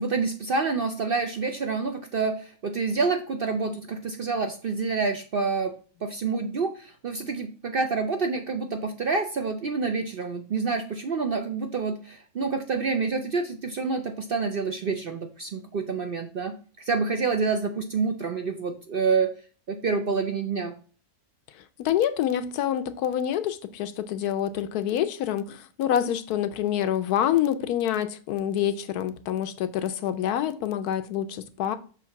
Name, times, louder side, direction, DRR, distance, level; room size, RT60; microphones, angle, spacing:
voice 1, 0.0-5.7 6.0-19.3 19.7-20.7, right 4 dB, 55° right, 0.6 m, -28 dB
voice 2, 21.8-31.8, left 10 dB, 80° left, 1.2 m, -27 dB
6.4 x 3.2 x 5.7 m
omnidirectional pair, 1.6 m